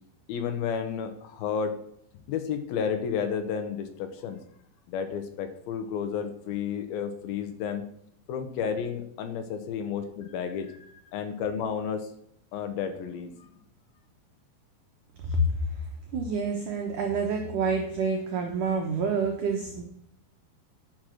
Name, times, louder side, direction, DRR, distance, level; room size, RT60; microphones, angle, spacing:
voice 1, 0.3-1.8 2.3-4.4 4.9-7.9 8.3-10.8 11.1-12.1 12.5-13.5, left 7 dB, 75° left, 6 dB, 2.3 m, -31 dB
voice 2, 16.1-19.8, right 3 dB, 80° right, 2 dB, 1.8 m, -28 dB
9.9 x 5.9 x 6.1 m, 0.70 s
omnidirectional pair, 5.4 m